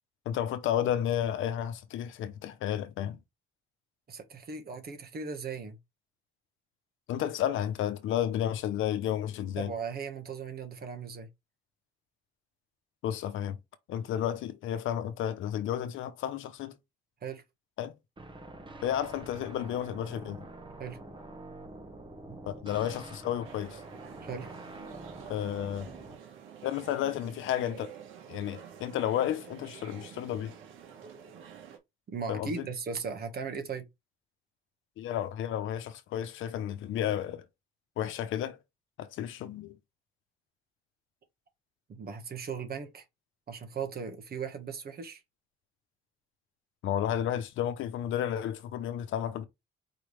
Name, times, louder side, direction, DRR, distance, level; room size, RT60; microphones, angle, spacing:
voice 1, 0.3-3.2 7.1-9.7 13.0-13.6 13.9-16.8 17.8-18.0 18.8-20.4 22.5-23.8 25.3-25.9 26.6-28.0 28.3-30.5 32.3-32.7 35.0-37.5 38.0-38.6 39.0-39.8 46.8-49.4, left 10 dB, 85° left, 0.8 m, -32 dB
voice 2, 4.1-5.8 9.6-11.3 17.2-17.4 20.8-21.0 22.3-22.4 24.2-24.5 32.1-33.9 41.9-43.0 43.5-45.2, right 5 dB, 50° right, 1.4 m, -37 dB
sound 1, 18.2-26.2, right 2 dB, 25° right, 1.2 m, -46 dB
sound 2, 23.4-31.8, right 8 dB, 90° right, 1.2 m, -49 dB
4.8 x 3.3 x 3.2 m
cardioid pair, 90°, 20 cm